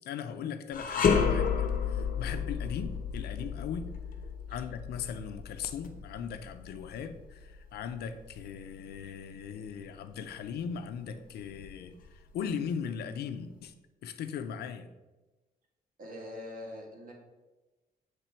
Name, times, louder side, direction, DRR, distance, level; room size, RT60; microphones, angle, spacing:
voice 1, 0.0-3.9 4.5-13.7 14.0-14.9, left 7 dB, 85° left, 9 dB, 0.5 m, -38 dB
sound 1, 0.7-10.0 10.4-10.6 11.4-12.3, left 6 dB, 60° left, 0.8 m, -32 dB
voice 2, 16.0-17.1, left 1 dB, 60° right, 0 dB, 1.8 m, -43 dB
8.3 x 3.3 x 4.4 m, 1.1 s
cardioid pair, 95°, 16 cm